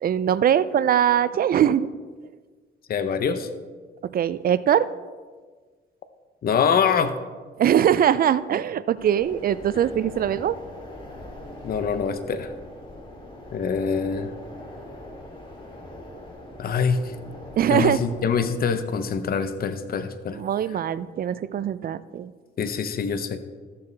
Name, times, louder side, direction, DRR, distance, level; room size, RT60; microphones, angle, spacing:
voice 1, 0.0-1.9 4.1-4.9 7.6-10.6 17.6-18.0 20.3-22.3, right 9 dB, 50° right, 16 dB, 0.4 m, -22 dB
voice 2, 2.9-3.5 6.4-7.1 11.6-12.5 13.5-14.3 16.6-17.0 17.7-20.4 22.6-23.4, left 6 dB, 50° left, 10 dB, 0.7 m, -24 dB
sound 1, 9.0-18.4, left 1 dB, 25° left, 2.2 m, -41 dB
14.0 x 6.9 x 3.4 m, 1.5 s
cardioid pair, 90°, 20 cm